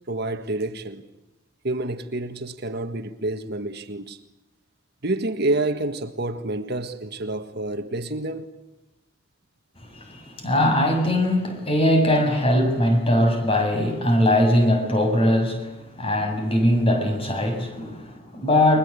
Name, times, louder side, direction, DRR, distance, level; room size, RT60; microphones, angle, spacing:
voice 1, 0.1-1.0 1.6-4.2 5.0-8.6, right 2 dB, 55° right, 1.7 m, -28 dB
voice 2, 9.9-18.8, left 1 dB, 30° left, 6.6 m, -21 dB
30.0 x 23.5 x 8.4 m
head